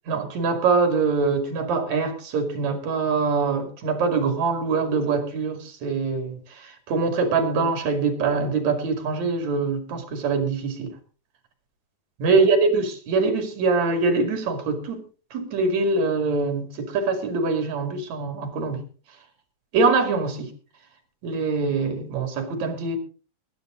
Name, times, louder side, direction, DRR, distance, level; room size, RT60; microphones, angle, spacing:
voice 1, 0.1-10.9 12.2-15.0 15.3-18.8 19.7-20.5 21.2-23.0, right 4 dB, 65° right, 6 dB, 3.6 m, -23 dB
20.0 x 10.0 x 3.8 m, 0.38 s
omnidirectional pair, 3.5 m